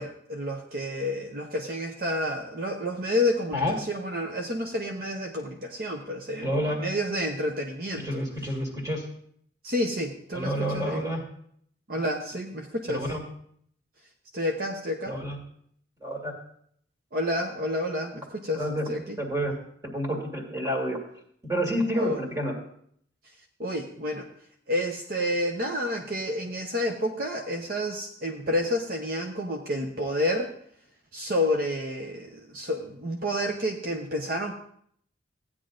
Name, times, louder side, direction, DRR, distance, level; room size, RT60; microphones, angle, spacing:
voice 1, 0.0-8.2 9.6-11.0 11.9-13.1 14.3-15.2 17.1-19.2 22.0-22.2 23.6-24.3 24.7-30.5 31.1-34.5, left 1 dB, 50° right, 2 dB, 0.8 m, -29 dB
voice 2, 6.4-6.8 8.0-9.1 10.3-11.2 12.9-13.2 15.0-15.4 16.0-16.3 18.5-18.9 19.2-19.5 19.9-21.0 21.5-22.5, equal, 20° right, 0 dB, 2.2 m, -29 dB
15.5 x 9.8 x 2.5 m, 0.65 s
head